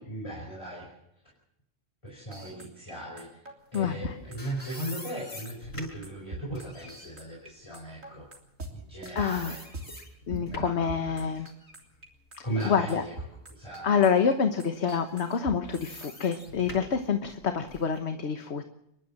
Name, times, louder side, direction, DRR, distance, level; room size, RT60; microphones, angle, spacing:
voice 1, 0.1-0.9 2.0-3.4 3.7-8.3 8.7-9.6 10.5-11.5 12.4-13.1 13.5-14.1, right 1 dB, 20° left, -2 dB, 4.9 m, -37 dB
sound 1, 2.3-7.5 7.7-8.7 9.0-9.9 10.3-12.1 12.3-16.6, right 2 dB, 75° right, 3.8 m, -42 dB
voice 2, 3.7-4.2 9.1-9.5 10.3-11.5 12.6-13.0 13.8-18.6, left 6 dB, 55° left, 6 dB, 1.4 m, -27 dB
sound 2, 3.9-8.9 9.2-10.9 11.4-13.3 13.8-13.9 15.0-18.0, left 1 dB, 90° left, 5.8 m, -46 dB
29.5 x 11.5 x 7.4 m, 0.82 s
omnidirectional pair, 1.4 m